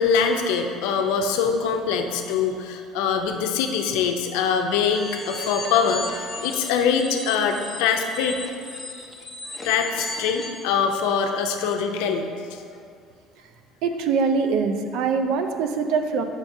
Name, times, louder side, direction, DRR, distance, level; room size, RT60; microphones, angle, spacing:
voice 1, 0.0-8.4 9.6-12.6, left 6 dB, 85° left, 4 dB, 0.5 m, -23 dB
sound 1, 4.9-10.7, left 2 dB, 15° left, 0.8 m, -36 dB
voice 2, 13.8-16.2, right 5 dB, 75° right, 6 dB, 0.5 m, -23 dB
7.2 x 5.8 x 2.7 m, 2.3 s
cardioid pair, 110°, 0 cm